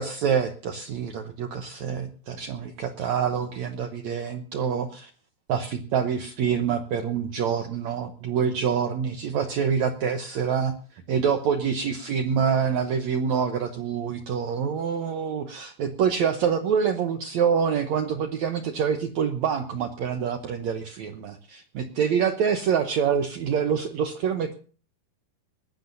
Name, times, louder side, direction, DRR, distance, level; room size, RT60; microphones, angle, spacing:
voice 1, 0.0-5.1 5.5-10.7 11.1-24.6, right 7 dB, 85° right, 7 dB, 1.6 m, -26 dB
20.5 x 15.0 x 2.7 m, 0.40 s
omnidirectional pair, 4.7 m